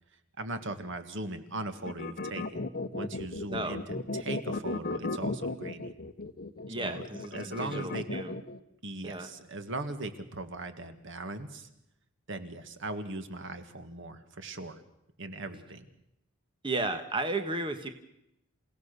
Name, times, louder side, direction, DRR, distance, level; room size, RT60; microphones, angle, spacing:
voice 1, 0.4-2.7 2.9-3.8 4.1-5.9 6.8-8.0 8.8-11.7 12.3-14.8 15.2-15.9, right 2 dB, 65° right, 9 dB, 1.9 m, -39 dB
sound 1, 1.9-8.6, left 2 dB, 45° left, 1.0 m, -35 dB
voice 2, 3.5-3.8 6.7-8.3 9.0-9.3 16.6-17.9, right 2 dB, 25° right, 7 dB, 1.3 m, -34 dB
28.5 x 17.0 x 6.8 m, 0.82 s
head